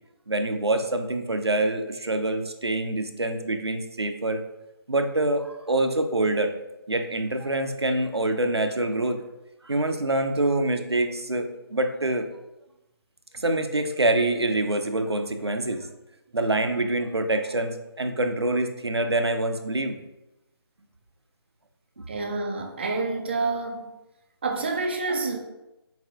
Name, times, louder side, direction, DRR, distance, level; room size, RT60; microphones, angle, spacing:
voice 1, 0.3-4.4 4.9-6.5 6.9-9.2 9.6-12.3 13.3-15.9 16.3-20.0 22.0-22.1, right 2 dB, 90° right, 7 dB, 0.6 m, -25 dB
voice 2, 22.1-23.9 24.4-25.4, right 3 dB, 25° right, 3 dB, 0.4 m, -28 dB
4.1 x 4.0 x 2.8 m, 0.96 s
figure-of-eight pair, 150°, 13 cm